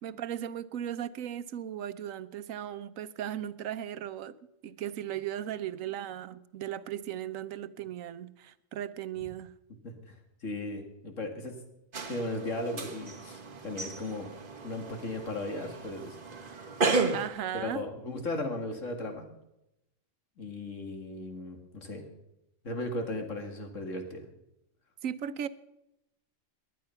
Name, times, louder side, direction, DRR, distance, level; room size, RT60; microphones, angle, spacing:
voice 1, 0.0-4.3 4.6-9.5 17.1-17.9 25.0-25.5, right 10 dB, 90° right, 1.1 m, -37 dB
voice 2, 9.8-10.1 10.4-11.5 12.1-14.3 14.6-16.2 17.5-19.3 20.4-22.0 22.6-24.2, left 2 dB, 75° left, 2.5 m, -36 dB
sound 1, 11.9-17.3, right 3 dB, 40° right, 1.5 m, -34 dB
19.0 x 10.5 x 5.7 m
omnidirectional pair, 1.3 m